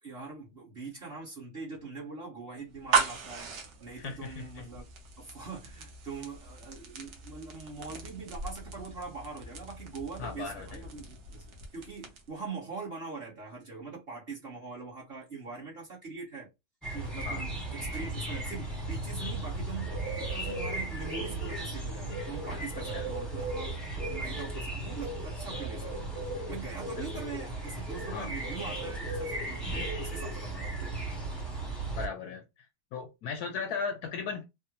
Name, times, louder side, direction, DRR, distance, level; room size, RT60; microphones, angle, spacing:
voice 1, 0.0-3.5 3.8-4.8 5.2-11.4 11.7-16.5 16.9-23.7 24.1-26.1 26.5-30.9, right 4 dB, 40° right, 0.9 m, -42 dB
sound 1, 2.7-12.4, right 5 dB, 65° right, 1.3 m, -37 dB
voice 2, 4.0-4.6 10.2-10.8 17.2-17.5 22.8-23.1 27.0-27.3 28.1-28.3 31.9-32.5 32.9-34.4, left 5 dB, 70° left, 1.0 m, -37 dB
sound 2, 16.8-32.1, right 2 dB, ahead, 0.6 m, -36 dB
3.5 x 2.0 x 2.8 m
omnidirectional pair, 2.0 m